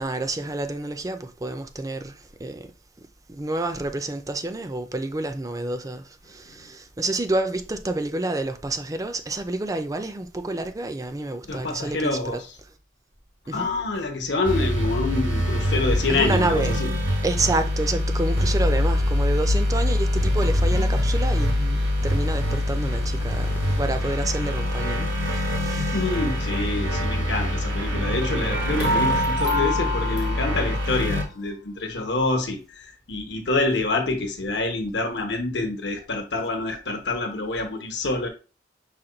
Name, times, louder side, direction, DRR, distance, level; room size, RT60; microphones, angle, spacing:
voice 1, 0.0-2.7 3.3-12.4 13.5-13.7 16.1-16.7 17.2-26.0, right 2 dB, 20° right, 0.4 m, -29 dB
voice 2, 11.4-12.5 13.5-16.9 25.9-38.3, left 2 dB, 70° left, 1.0 m, -27 dB
sound 1, 14.4-31.2, left 1 dB, 90° right, 1.2 m, -24 dB
sound 2, 22.0-27.0, left 3 dB, 50° left, 0.5 m, -40 dB
sound 3, 28.5-31.0, left 1 dB, 65° right, 0.9 m, -26 dB
5.7 x 2.2 x 3.9 m
head